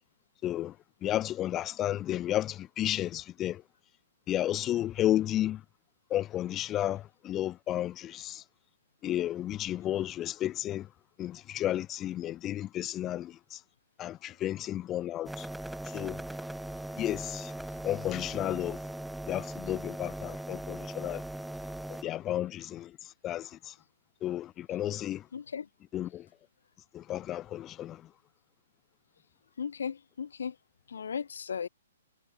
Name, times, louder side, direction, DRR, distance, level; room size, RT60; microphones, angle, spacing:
voice 1, 0.4-0.7 1.0-3.6 4.3-5.6 6.1-8.4 9.0-10.9 11.2-13.6 14.0-15.5 15.9-16.2 17.0-17.5 17.8-18.8 19.3-21.2 21.9-23.0 23.2-23.7 24.2-25.2 25.9-26.3 26.9-28.0, left 13 dB, 25° left, 0.6 m, -32 dB
sound 1, 15.3-22.0, right 1 dB, ahead, 2.1 m, -39 dB
voice 2, 25.3-25.7 29.6-30.6 30.9-31.7, left 7 dB, 70° left, 3.0 m, -36 dB
figure-of-eight pair, 125°, 0 cm